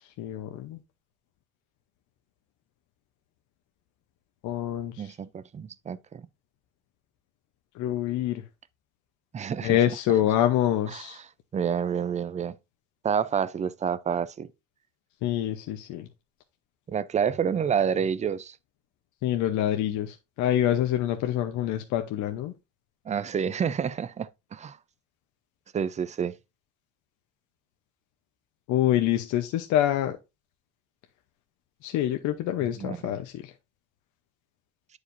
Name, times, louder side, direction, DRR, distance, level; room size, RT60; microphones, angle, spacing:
voice 1, 0.2-0.8 4.4-5.1 7.7-8.4 9.6-11.2 15.2-16.1 19.2-22.5 28.7-30.2 31.8-33.5, left 12 dB, 80° left, 0.8 m, -26 dB
voice 2, 5.0-6.3 9.3-9.8 10.9-11.1 11.5-12.6 13.0-14.5 16.9-18.6 23.1-24.8 25.7-26.4 32.8-33.0, right 7 dB, 25° right, 0.5 m, -28 dB
9.9 x 4.9 x 2.6 m
cardioid pair, 130°, 29 cm